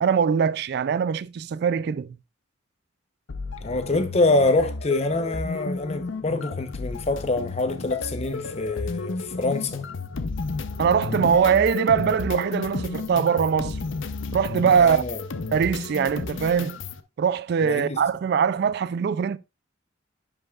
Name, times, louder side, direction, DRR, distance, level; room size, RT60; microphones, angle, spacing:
voice 1, 0.0-2.1 10.8-13.8 14.3-15.0 15.5-16.8 17.2-19.4, right 7 dB, 55° right, 0.3 m, -22 dB
sound 1, 3.3-17.0, left 3 dB, 70° left, 0.7 m, -32 dB
voice 2, 3.6-9.8 14.8-15.2 17.6-18.0, left 2 dB, 35° left, 0.8 m, -25 dB
10.5 x 5.3 x 2.4 m
head